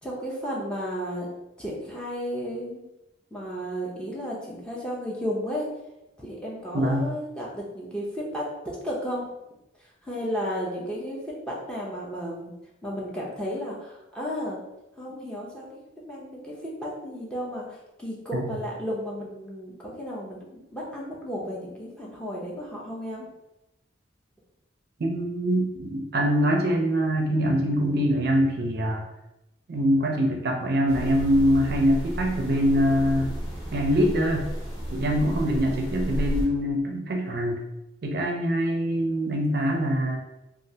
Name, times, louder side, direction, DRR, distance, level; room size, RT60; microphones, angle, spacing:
voice 1, 0.0-1.3 1.6-2.8 3.3-5.7 6.2-9.3 10.0-12.5 12.8-14.6 15.0-20.5 20.7-23.3, equal, 5° left, -5 dB, 0.5 m, -33 dB
voice 2, 6.7-7.1 18.3-18.5 25.0-29.0 29.7-33.4 33.7-34.4 34.9-37.6 38.0-40.2, equal, 55° right, 1 dB, 0.4 m, -24 dB
sound 1, 30.9-36.5, equal, 75° left, 1.0 m, -32 dB
3.1 x 2.3 x 2.7 m, 0.92 s
head